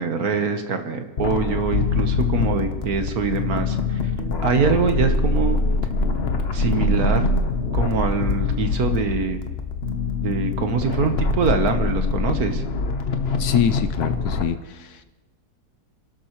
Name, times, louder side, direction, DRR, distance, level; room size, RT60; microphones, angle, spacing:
voice 1, 0.0-4.0 4.4-5.6 6.5-7.3 7.7-9.4 10.2-12.6, right 5 dB, 60° right, 7 dB, 1.5 m, -24 dB
sound 1, 1.2-14.4, left 3 dB, 40° left, 1.0 m, -24 dB
voice 2, 13.4-15.0, left 9 dB, 70° left, 11 dB, 1.1 m, -25 dB
28.5 x 12.0 x 3.1 m, 1.2 s
omnidirectional pair, 1.9 m